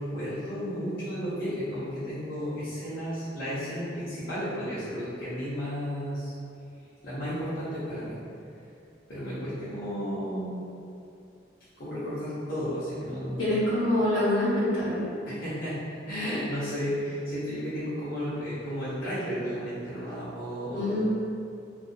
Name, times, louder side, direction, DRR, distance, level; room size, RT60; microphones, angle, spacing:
voice 1, 0.0-6.3 7.0-8.2 9.1-10.6 11.8-13.5 15.3-15.8 16.1-21.1, equal, 50° left, -13 dB, 0.7 m, -33 dB
voice 2, 13.4-15.0 20.7-21.1, left 1 dB, 80° left, -10 dB, 0.9 m, -25 dB
2.3 x 2.3 x 2.5 m, 2.5 s
head